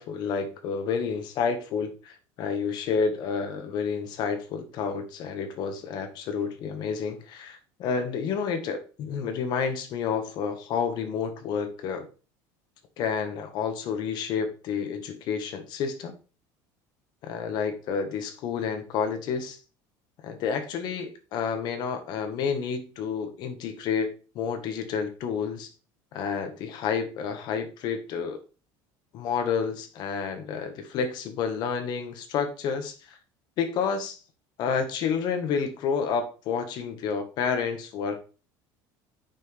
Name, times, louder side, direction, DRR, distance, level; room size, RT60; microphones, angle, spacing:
voice 1, 0.0-12.1 13.0-16.1 17.2-19.6 20.2-25.7 26.1-28.4 29.1-33.2 33.6-34.2 34.6-38.2, left 6 dB, 50° left, 7 dB, 1.6 m, -30 dB
8.9 x 5.9 x 3.4 m, 0.35 s
cardioid pair, 155°, 9 cm